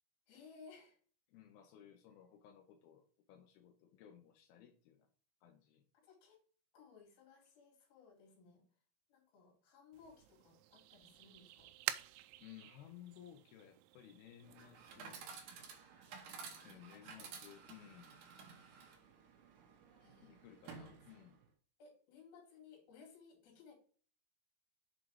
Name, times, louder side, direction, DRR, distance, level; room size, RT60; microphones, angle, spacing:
voice 1, 0.3-1.0 6.0-6.4 6.7-8.6 9.1-11.7 16.4-17.4 20.0-20.3 20.7-20.8 21.8-23.7, left 5 dB, 55° left, -1 dB, 4.0 m, -61 dB
voice 2, 1.3-5.1 5.4-5.8 12.4-15.2 16.6-18.1 20.2-21.4, left 11 dB, 80° left, 4 dB, 2.2 m, -58 dB
sound 1, 9.9-15.1, right 15 dB, 85° right, 3.0 m, -48 dB
Chatter / Coin (dropping), 14.4-21.5, right 5 dB, 70° right, 2.0 m, -54 dB
7.3 x 3.9 x 4.7 m, 0.42 s
omnidirectional pair, 5.5 m